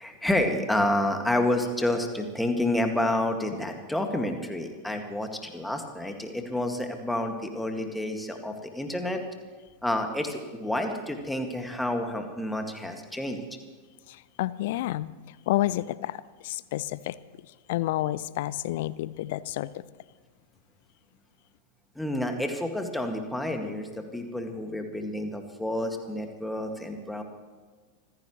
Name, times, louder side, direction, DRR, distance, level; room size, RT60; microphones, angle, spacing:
voice 1, 0.0-9.2 9.8-13.4 22.0-27.2, left 1 dB, 5° left, 4 dB, 2.0 m, -29 dB
voice 2, 14.1-17.2 17.7-19.8, left 15 dB, 50° left, 19 dB, 0.5 m, -30 dB
26.0 x 15.5 x 3.2 m, 1.4 s
figure-of-eight pair, 90°, 0 cm